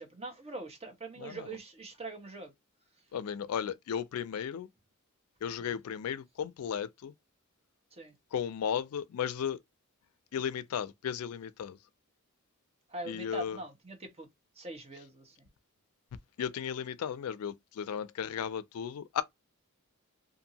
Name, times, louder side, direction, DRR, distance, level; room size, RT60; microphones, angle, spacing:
voice 1, 0.0-2.5 5.6-5.7 7.9-8.1 12.9-14.3 14.6-15.5, right 2 dB, 30° right, 1.0 m, -43 dB
voice 2, 1.2-1.5 3.1-4.7 5.4-7.1 8.3-9.6 10.3-11.8 13.0-13.6 16.4-19.2, left 8 dB, 75° left, 0.4 m, -35 dB
2.6 x 2.5 x 2.7 m
head